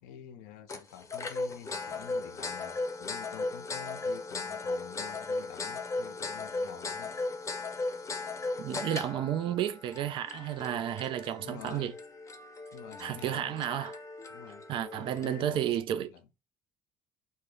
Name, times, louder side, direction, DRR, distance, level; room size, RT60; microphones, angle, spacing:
voice 1, 0.0-7.2 11.4-12.0 12.7-13.6 14.3-16.3, left 9 dB, 80° left, 0.4 m, -48 dB
sound 1, 0.7-15.5, left 3 dB, 30° left, 0.6 m, -37 dB
voice 2, 8.6-11.9 13.0-14.0 14.7-16.1, right 11 dB, 60° right, 0.3 m, -32 dB
2.2 x 2.0 x 3.0 m
hypercardioid pair, 55°, 10 cm